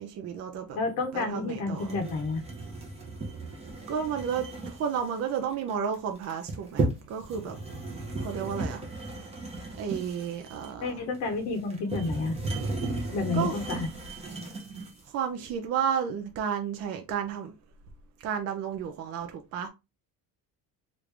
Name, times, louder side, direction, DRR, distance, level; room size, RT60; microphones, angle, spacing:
voice 1, 0.0-0.8 1.1-2.0 3.9-7.6 8.2-8.8 9.8-11.0 13.3-13.5 15.1-17.5 18.2-19.7, right 7 dB, 45° right, 0.4 m, -32 dB
voice 2, 0.8-2.4 10.8-12.4 13.1-13.9, left 3 dB, 50° left, 0.7 m, -30 dB
sound 1, 1.7-15.1, right 2 dB, 20° right, 0.7 m, -35 dB
3.1 x 2.5 x 3.2 m
cardioid pair, 180°, 34 cm